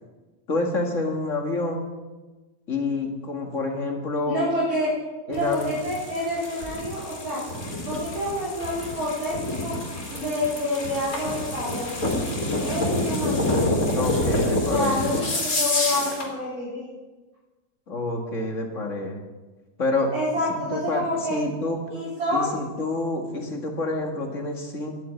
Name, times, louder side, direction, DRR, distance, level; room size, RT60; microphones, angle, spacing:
voice 1, 0.5-1.8 2.7-4.4 5.3-5.8 13.9-15.1 17.9-19.2 19.8-20.1 20.5-21.8 22.3-25.0, left 2 dB, 55° left, 2 dB, 2.2 m, -28 dB
voice 2, 4.3-4.9 5.3-7.4 7.9-9.8 10.1-12.1 12.6-13.9 14.7-16.9 20.1-21.4 21.9-22.5, left 1 dB, 70° right, -10 dB, 4.4 m, -28 dB
sound 1, 5.3-16.3, left 1 dB, 75° left, 3.3 m, -28 dB
10.5 x 8.4 x 9.4 m, 1.2 s
omnidirectional pair, 1.5 m